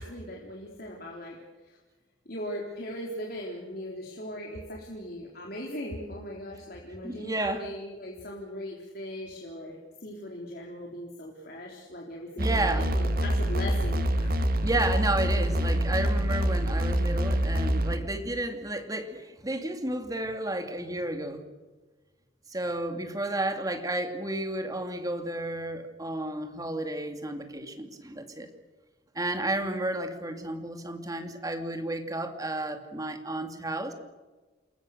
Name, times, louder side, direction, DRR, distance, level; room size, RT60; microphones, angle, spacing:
voice 1, 0.0-1.4 1.6-1.8 2.3-14.3, equal, 55° left, -1 dB, 3.8 m, -39 dB
voice 2, 7.0-7.6 12.4-12.9 14.6-21.5 22.5-28.5 29.1-33.9, right 1 dB, 20° right, 6 dB, 2.5 m, -32 dB
sound 1, 12.4-18.0, equal, 50° right, 1.6 m, -26 dB
28.5 x 21.5 x 6.7 m, 1.2 s
head